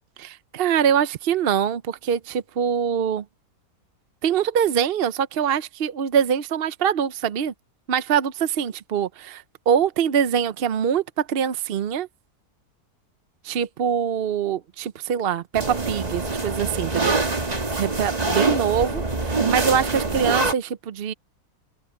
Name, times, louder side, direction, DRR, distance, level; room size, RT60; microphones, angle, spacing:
voice 1, 0.2-3.2 4.2-7.5 7.9-12.1 13.4-17.2 17.7-21.1, right 8 dB, 55° right, 0.7 m, -24 dB
sound 1, 15.5-20.5, right 3 dB, 25° right, 1.8 m, -24 dB
open air
omnidirectional pair, 1.6 m